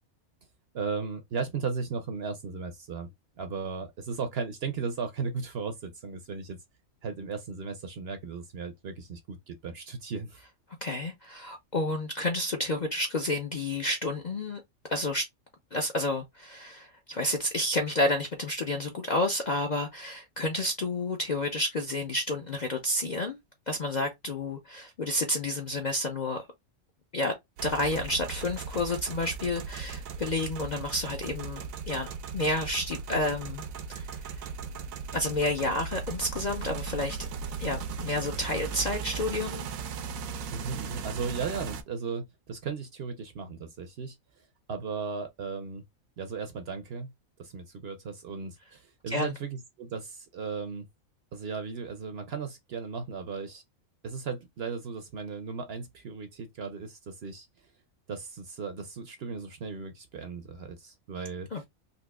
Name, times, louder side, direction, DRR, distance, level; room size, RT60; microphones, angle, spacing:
voice 1, 0.7-3.1 3.4-6.6 7.0-10.4 40.5-44.2 44.7-45.8 46.2-47.1 47.4-50.9 51.3-53.6 54.0-57.5 58.1-61.7, right 5 dB, 60° right, 0.7 m, -36 dB
voice 2, 10.8-14.6 14.9-15.2 15.7-23.4 23.7-26.4 27.1-27.3 27.6-32.1 32.3-34.4 35.1-37.2 37.6-39.7 49.1-49.3 61.5-61.7, left 2 dB, 50° left, 0.5 m, -30 dB
sound 1, 27.6-41.8, right 6 dB, 80° right, 1.0 m, -37 dB
4.0 x 2.7 x 2.2 m
omnidirectional pair, 1.4 m